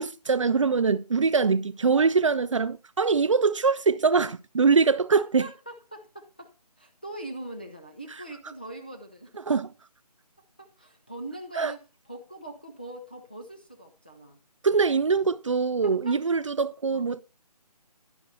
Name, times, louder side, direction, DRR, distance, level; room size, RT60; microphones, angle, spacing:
voice 1, 0.0-5.5 9.5-9.7 11.6-11.7 14.6-17.2, right 5 dB, 50° right, 0.4 m, -23 dB
voice 2, 5.4-6.5 6.8-9.4 10.4-11.8 12.1-14.4 15.8-16.2 16.9-17.1, right 1 dB, 15° left, 0.4 m, -42 dB
10.5 x 10.5 x 2.7 m
figure-of-eight pair, 160°, 20 cm